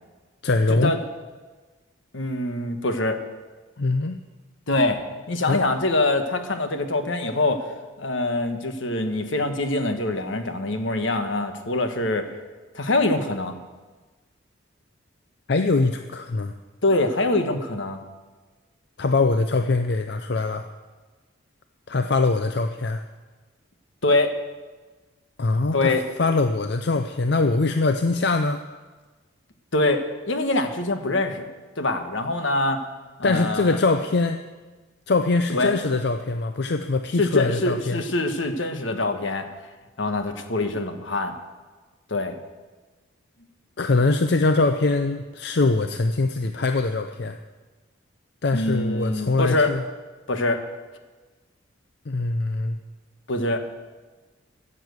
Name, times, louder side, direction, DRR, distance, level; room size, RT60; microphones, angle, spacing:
voice 1, 0.4-0.9 3.8-4.2 5.5-5.7 15.5-16.5 19.0-20.7 21.9-23.0 25.4-25.9 26.2-28.6 33.2-34.4 35.1-38.0 43.8-47.4 48.4-49.8 52.1-52.8, left 3 dB, 55° left, 7 dB, 0.5 m, -22 dB
voice 2, 2.1-3.2 4.7-5.0 5.3-7.6 8.0-12.3 12.7-13.5 16.8-18.0 24.0-24.4 25.7-26.1 29.7-31.5 31.8-32.8 33.2-33.8 35.5-35.7 37.2-39.5 40.0-41.4 42.1-42.4 48.5-49.7 50.3-50.6 53.3-53.6, left 2 dB, 75° left, 7 dB, 1.3 m, -24 dB
15.0 x 7.6 x 8.0 m, 1.3 s
head